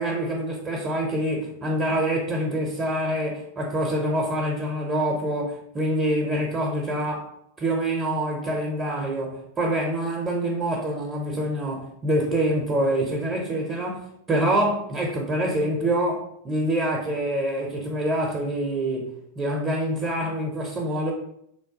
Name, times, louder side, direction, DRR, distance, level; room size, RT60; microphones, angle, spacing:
voice 1, 0.0-7.3 7.6-21.1, right 1 dB, 20° right, -1 dB, 0.5 m, -26 dB
3.1 x 2.2 x 2.6 m, 0.75 s
figure-of-eight pair, 90°, 0 cm